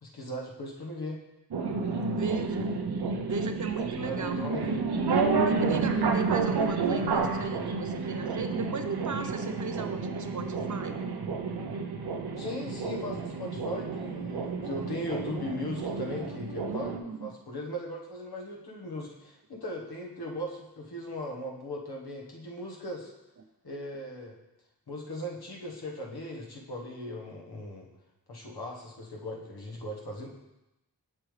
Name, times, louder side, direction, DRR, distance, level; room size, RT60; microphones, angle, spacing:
voice 1, 0.0-1.2 1.8-2.4 3.9-4.8 12.4-23.1 23.6-24.3 24.9-27.9 28.3-30.3, left 1 dB, 80° left, -1 dB, 1.5 m, -38 dB
sound 1, 1.5-17.0, right 4 dB, 85° right, 0.8 m, -30 dB
voice 2, 2.1-2.7 3.3-4.4 5.4-11.0 16.7-17.3, right 5 dB, 50° right, 7 dB, 0.7 m, -36 dB
7.3 x 7.0 x 3.3 m, 0.94 s
wide cardioid pair, 80°, 38 cm